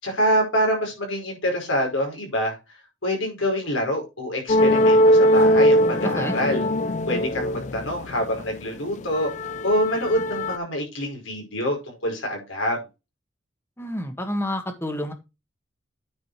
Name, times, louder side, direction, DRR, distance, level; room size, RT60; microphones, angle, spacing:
voice 1, 0.0-2.6 3.0-6.7 7.1-9.3 9.6-12.8, equal, 80° left, 1 dB, 4.9 m, -26 dB
sound 1, 4.5-8.5 9.0-10.6, equal, 40° left, 0.5 m, -20 dB
voice 2, 6.0-6.3 13.8-15.1, left 1 dB, 10° left, 6 dB, 1.6 m, -29 dB
9.4 x 5.0 x 4.8 m, 0.26 s
head